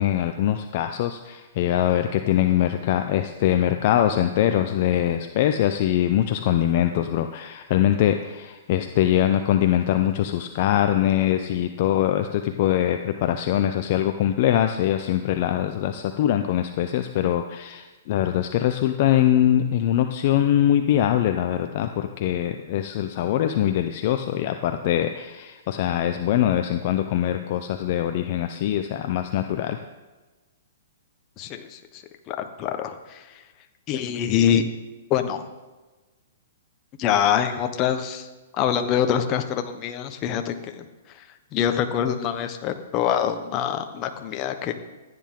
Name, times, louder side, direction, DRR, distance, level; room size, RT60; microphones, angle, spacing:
voice 1, 0.0-29.8, left 11 dB, 50° left, 7 dB, 0.7 m, -23 dB
voice 2, 31.4-33.4 33.9-34.7 35.1-35.5 37.0-38.3 38.5-41.2 41.5-44.7, left 9 dB, 35° left, 6 dB, 1.2 m, -25 dB
15.0 x 9.6 x 3.8 m, 1.2 s
hypercardioid pair, 130°, 0 cm